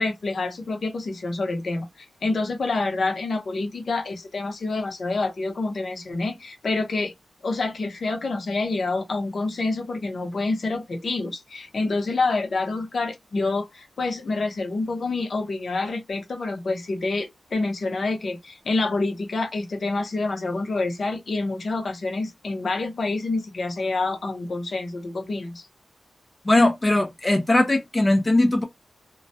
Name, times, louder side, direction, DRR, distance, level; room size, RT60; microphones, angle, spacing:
voice 1, 0.0-7.1 7.4-25.7, left 3 dB, 60° left, 0.7 m, -27 dB
voice 2, 26.5-28.6, left 2 dB, 25° left, 0.5 m, -19 dB
2.2 x 2.1 x 2.6 m
wide cardioid pair, 100°, 0 cm